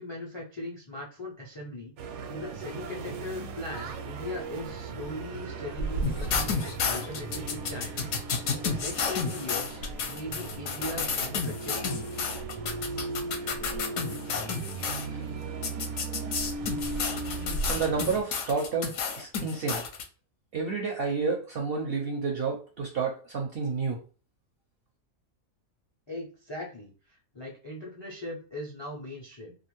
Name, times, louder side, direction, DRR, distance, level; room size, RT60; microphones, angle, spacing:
voice 1, 0.0-8.1 8.6-12.1 26.1-26.9 27.3-29.6, left 1 dB, 40° left, -2 dB, 0.3 m, -39 dB
sound 1, 2.0-18.2, right 3 dB, 80° right, 1.0 m, -36 dB
sound 2, 6.0-15.1 15.6-20.0, left 5 dB, 70° left, 0.9 m, -31 dB
voice 2, 17.7-18.9 19.2-19.8 20.5-24.0, right 4 dB, 65° right, 1 dB, 0.6 m, -30 dB
2.5 x 2.4 x 3.0 m, 0.37 s
omnidirectional pair, 1.5 m